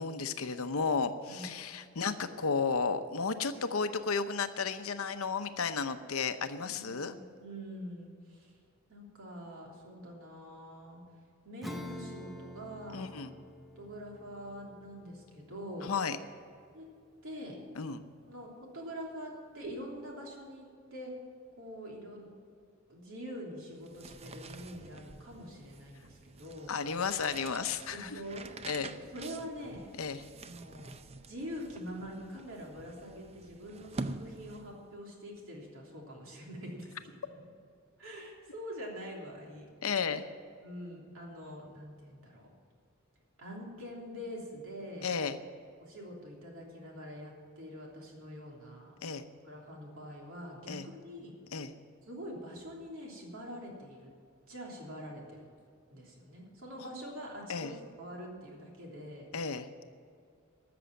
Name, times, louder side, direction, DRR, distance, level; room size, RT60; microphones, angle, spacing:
voice 1, 0.0-7.1 12.9-13.3 15.8-16.2 17.7-18.0 26.7-28.2 28.6-28.9 30.0-30.2 39.8-40.2 45.0-45.4 49.0-49.3 50.7-50.8 51.5-51.7 57.5-57.7 59.3-59.7, left 5 dB, 80° left, 10 dB, 0.8 m, -33 dB
voice 2, 6.6-8.5 8.9-11.0 11.4-13.1 13.7-15.9 16.7-16.8 17.2-17.6 18.3-21.1 21.6-22.3 22.9-26.8 27.9-28.5 28.9-29.9 30.4-30.9 31.3-37.0 37.3-37.4 38.0-39.6 40.6-42.5 43.4-45.1 45.8-48.9 49.4-51.3 52.1-54.1 54.5-55.4 55.9-59.3, equal, 70° right, -2 dB, 3.2 m, -45 dB
Acoustic guitar / Strum, 11.6-17.6, left 1 dB, ahead, 0.8 m, -48 dB
sound 1, 23.7-34.9, right 3 dB, 30° right, 0.5 m, -47 dB
13.5 x 6.9 x 8.9 m, 2.3 s
head